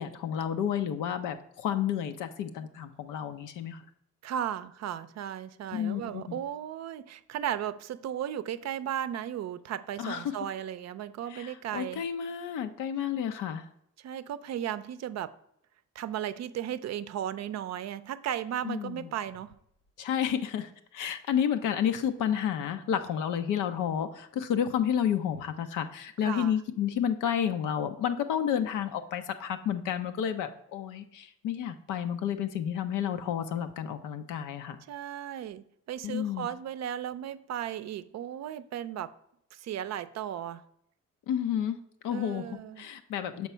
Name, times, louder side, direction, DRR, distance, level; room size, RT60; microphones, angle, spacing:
voice 1, 0.0-3.8 5.7-6.2 10.0-10.3 11.3-13.7 18.6-19.1 20.0-34.8 36.0-36.5 41.3-41.8 42.0-43.5, left 9 dB, 90° left, 0.7 m, -31 dB
voice 2, 4.2-12.0 14.0-15.3 15.9-19.5 26.2-26.5 34.9-39.1 39.5-40.6 42.1-42.9, right 10 dB, 60° right, 0.5 m, -35 dB
6.1 x 4.6 x 5.5 m
cardioid pair, 90°, 30 cm